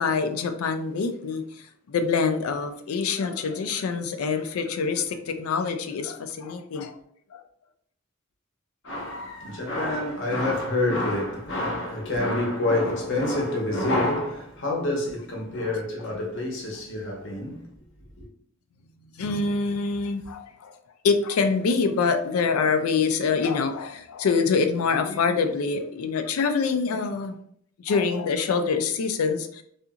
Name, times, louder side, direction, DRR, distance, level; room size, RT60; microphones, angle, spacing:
voice 1, 0.0-1.4 1.9-6.9 7.3-7.4 19.2-20.7 21.0-27.4 27.8-29.6, left 5 dB, 80° left, 0.4 m, -25 dB
voice 2, 8.8-17.7 18.2-18.3, left 1 dB, 60° left, 0.8 m, -27 dB
2.8 x 2.5 x 2.4 m
head